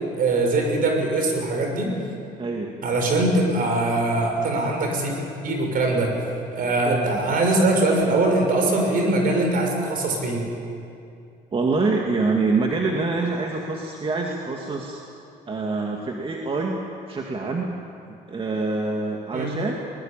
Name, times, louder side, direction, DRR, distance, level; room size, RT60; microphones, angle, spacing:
voice 1, 0.1-1.9 2.8-6.2 6.5-10.5 19.3-19.5, right 2 dB, 55° right, 2 dB, 6.2 m, -22 dB
voice 2, 2.4-2.7 6.8-7.4 11.5-15.0 15.5-16.8 17.1-17.7 18.3-19.7, right 3 dB, 30° right, 0 dB, 2.2 m, -25 dB
21.0 x 20.5 x 9.0 m, 2.5 s
cardioid pair, 110°, 17 cm